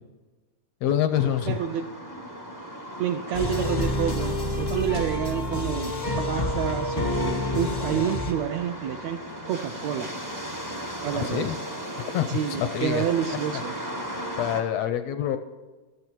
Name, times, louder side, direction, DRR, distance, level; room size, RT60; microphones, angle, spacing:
voice 1, 0.8-1.6 11.1-11.6 12.0-13.0 14.4-15.4, left 10 dB, 80° left, 9 dB, 1.5 m, -26 dB
sound 1, 1.1-14.6, equal, 25° right, 0.4 m, -37 dB
voice 2, 1.5-1.9 3.0-9.2 9.5-10.1 11.0-11.6 12.3-13.7, right 9 dB, 75° right, 6 dB, 1.6 m, -29 dB
sound 2, 3.3-8.3, left 2 dB, 40° left, 0.6 m, -28 dB
14.0 x 12.5 x 4.5 m, 1.3 s
omnidirectional pair, 3.6 m